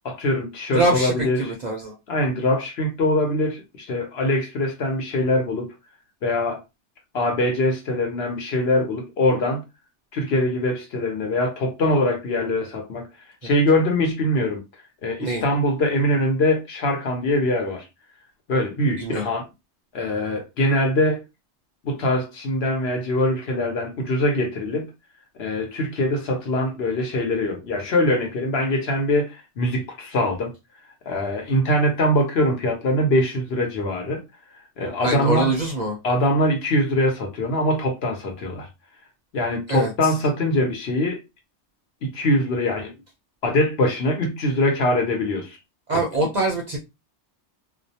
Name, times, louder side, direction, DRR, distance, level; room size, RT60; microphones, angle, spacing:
voice 1, 0.0-1.5 2.1-5.7 6.2-6.6 7.1-9.6 10.1-13.1 13.4-14.6 15.0-17.9 18.5-19.5 19.9-21.2 21.8-24.9 25.4-30.5 31.1-34.2 34.8-35.5 36.0-38.7 39.3-41.2 42.0-42.9 43.4-45.6 45.9-46.0, left 1 dB, 60° left, 0.9 m, -23 dB
voice 2, 0.7-2.0 15.2-15.4 19.0-19.2 35.0-36.0 39.7-39.9 45.9-46.8, right 2 dB, 50° right, 0.5 m, -23 dB
2.3 x 2.0 x 2.7 m
omnidirectional pair, 1.2 m